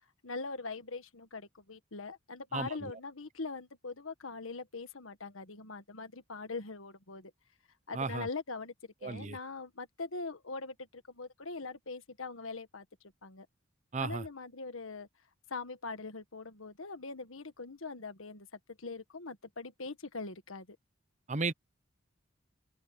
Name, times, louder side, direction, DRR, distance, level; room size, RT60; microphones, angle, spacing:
voice 1, 0.2-7.3 7.9-12.8 13.2-13.5 14.0-15.1 15.5-20.8, left 3 dB, 80° left, 1.6 m, -42 dB
voice 2, 2.5-2.9 7.9-8.3 9.0-9.4 13.9-14.2 21.3-21.5, right 4 dB, 35° right, 0.8 m, -34 dB
open air
head